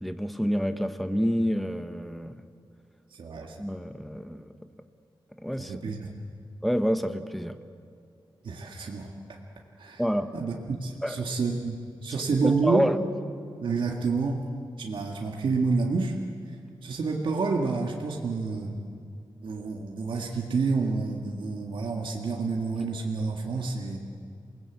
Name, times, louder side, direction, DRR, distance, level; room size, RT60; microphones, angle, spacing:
voice 1, 0.0-2.4 3.6-4.5 5.4-5.8 6.6-7.6 10.0-10.3 11.0-11.2 12.4-13.0, equal, ahead, 9 dB, 1.0 m, -28 dB
voice 2, 3.1-3.6 5.6-6.1 8.4-9.4 9.8-10.0 10.3-12.9 13.6-14.4 14.8-16.2 16.8-18.8 19.4-24.0, right 4 dB, 75° right, 0 dB, 1.9 m, -29 dB
27.5 x 19.5 x 8.2 m, 2.3 s
wide cardioid pair, 140°, 9 cm